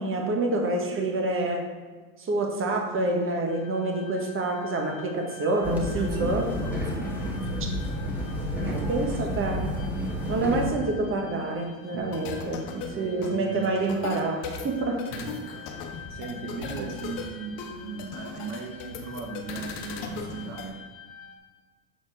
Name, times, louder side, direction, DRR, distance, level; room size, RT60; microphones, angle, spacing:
voice 1, 0.0-1.7 2.2-6.5 8.6-9.6 10.3-15.0, right 2 dB, 25° right, 2 dB, 1.2 m, -27 dB
sound 1, 3.5-21.4, left 6 dB, 25° left, 1.5 m, -48 dB
sound 2, 5.6-10.7, left 1 dB, 5° right, 1.7 m, -30 dB
voice 2, 5.9-7.8 8.7-9.5 10.0-10.2 11.9-12.2 12.9-13.9 15.1-20.8, right 4 dB, 55° right, 2 dB, 1.0 m, -38 dB
sound 3, 12.0-20.7, left 5 dB, 60° left, 1.1 m, -38 dB
7.2 x 4.2 x 3.8 m, 1.4 s
hypercardioid pair, 90°, 47 cm